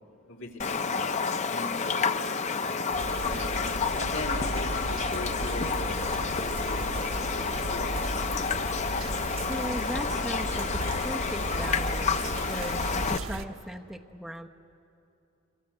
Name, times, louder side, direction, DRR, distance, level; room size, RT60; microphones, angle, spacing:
voice 1, 0.3-8.2, left 2 dB, 65° left, 0 dB, 3.0 m, -40 dB
Raindrop, 0.6-13.2, left 5 dB, 35° left, 0.6 m, -30 dB
sound 1, 2.9-13.5, right 2 dB, 75° right, 1.0 m, -35 dB
voice 2, 9.5-14.5, equal, ahead, 2 dB, 0.9 m, -38 dB
25.0 x 24.0 x 8.7 m, 2.7 s
head